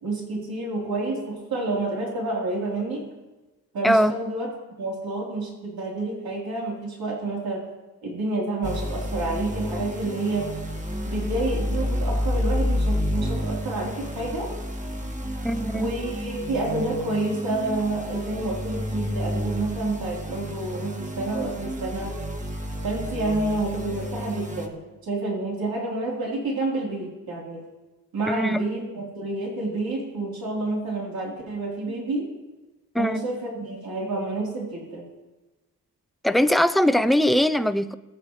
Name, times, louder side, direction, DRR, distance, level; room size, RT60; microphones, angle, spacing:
voice 1, 0.0-3.0 3.7-4.5 4.8-7.6 8.0-10.5 11.0-14.5 15.7-22.2 22.8-27.6 28.1-32.3 33.0-35.0, right 2 dB, 75° right, 3.9 m, -29 dB
sound 1, 8.6-24.7, equal, 20° right, 1.8 m, -30 dB
voice 2, 15.4-15.9 28.3-28.6 32.9-33.2 36.2-37.9, equal, ahead, 0.6 m, -21 dB
21.0 x 8.1 x 3.3 m
cardioid pair, 60°, 36 cm